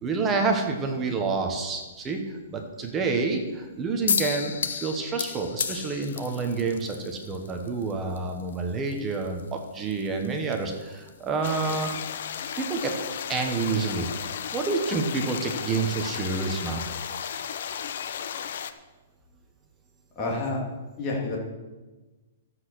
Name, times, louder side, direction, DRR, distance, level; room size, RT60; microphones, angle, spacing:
voice 1, 0.0-11.9 12.6-13.0 13.3-14.1 14.5-16.8, right 4 dB, 15° right, 4 dB, 1.1 m, -28 dB
Soda Can Flint and Steel, 4.1-17.4, left 7 dB, 85° left, 0.9 m, -37 dB
sound 1, 11.4-18.7, left 8 dB, 50° left, 0.8 m, -34 dB
voice 2, 20.2-20.6 21.0-21.4, left 2 dB, 20° left, -3 dB, 2.5 m, -28 dB
13.0 x 8.0 x 6.2 m, 1.2 s
hypercardioid pair, 175°, 0 cm